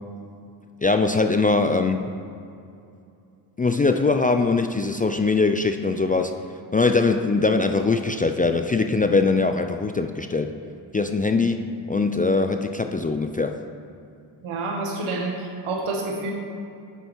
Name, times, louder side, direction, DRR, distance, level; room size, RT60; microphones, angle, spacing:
voice 1, 0.8-2.1 3.6-6.3 6.7-10.5 10.9-13.5, left 3 dB, 20° left, 6 dB, 0.3 m, -22 dB
voice 2, 14.4-16.3, right 2 dB, 80° right, 1 dB, 1.4 m, -28 dB
8.2 x 5.4 x 4.5 m, 2.6 s
supercardioid pair, 55°, 49 cm